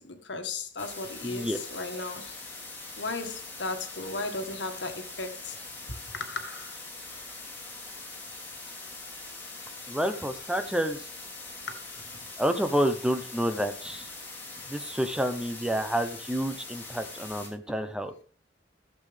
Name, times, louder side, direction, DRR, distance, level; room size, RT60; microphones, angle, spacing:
voice 1, 0.0-2.4 3.0-5.6 5.9-6.8 11.7-12.0, left 3 dB, 70° left, 1.6 m, -36 dB
sound 1, 0.8-17.5, left 3 dB, 10° left, 3.5 m, -42 dB
voice 2, 1.2-1.6 9.9-11.0 12.4-14.1 14.7-18.1, equal, 5° right, 0.7 m, -29 dB
15.5 x 7.6 x 3.4 m
head